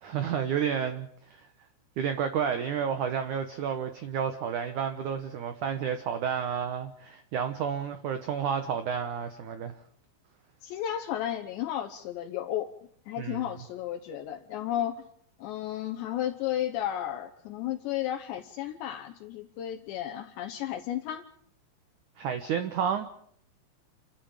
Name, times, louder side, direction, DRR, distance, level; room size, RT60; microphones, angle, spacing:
voice 1, 0.0-1.5 2.0-9.7 13.2-13.4 22.2-23.1, right 7 dB, 90° right, 9 dB, 1.7 m, -31 dB
voice 2, 10.6-12.7 13.1-15.0 15.4-21.3, left 11 dB, 75° left, 3 dB, 3.2 m, -33 dB
28.5 x 13.0 x 8.9 m, 0.66 s
omnidirectional pair, 5.3 m